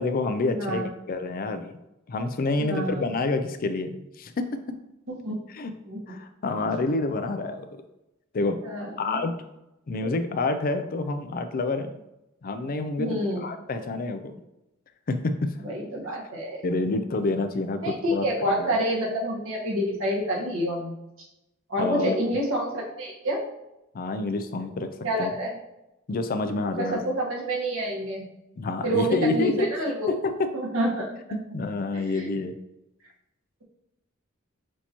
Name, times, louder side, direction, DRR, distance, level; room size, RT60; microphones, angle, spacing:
voice 1, 0.0-1.8 2.1-4.5 5.5-5.7 6.1-7.8 8.3-8.6 9.0-9.3 9.9-11.9 12.4-14.3 15.1-15.6 16.6-18.7 21.8-22.2 23.9-24.9 25.2-25.3 26.1-27.0 28.6-29.7 30.1-30.5 31.3-32.5, left 3 dB, 45° left, 9 dB, 0.4 m, -28 dB
voice 2, 0.5-0.9 2.6-3.0 5.2-5.3 5.9-6.0 8.6-9.3 13.0-13.4 15.6-16.6 17.8-21.0 21.7-23.4 25.0-25.6 26.8-28.3 28.8-30.1 30.5-31.1 32.1-32.3, right 1 dB, 80° right, -4 dB, 1.4 m, -28 dB
6.2 x 2.7 x 2.9 m, 0.89 s
head